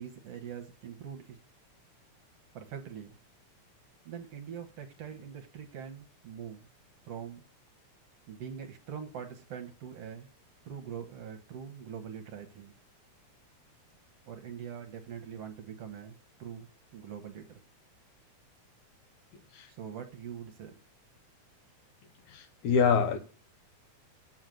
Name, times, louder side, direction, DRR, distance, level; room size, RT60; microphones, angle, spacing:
voice 1, 0.0-1.4 2.5-3.2 4.1-6.7 7.0-7.4 8.3-10.3 10.7-12.7 14.3-17.6 19.7-20.8, right 8 dB, 65° right, 1.9 m, -43 dB
voice 2, 22.3-23.2, left 6 dB, 75° left, 2.4 m, -25 dB
7.7 x 6.5 x 7.6 m
omnidirectional pair, 3.5 m